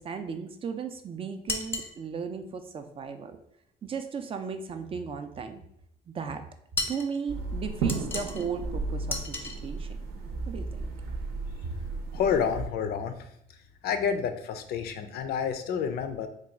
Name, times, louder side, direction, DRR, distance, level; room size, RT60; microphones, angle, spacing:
voice 1, 0.0-3.4 3.8-5.6 6.1-6.4 6.9-9.9 10.5-10.9 11.6-11.7, right 6 dB, 35° right, 8 dB, 0.4 m, -36 dB
sound 1, 1.5-1.9 6.8-7.1 7.9-8.5 9.1-9.6, left 3 dB, 15° left, 0.6 m, -33 dB
sound 2, 7.3-12.7, right 3 dB, 70° right, 0.7 m, -34 dB
voice 2, 12.1-13.1 13.8-16.3, left 7 dB, 65° left, 8 dB, 0.4 m, -29 dB
3.3 x 2.3 x 3.8 m, 0.74 s
cardioid pair, 110°, 17 cm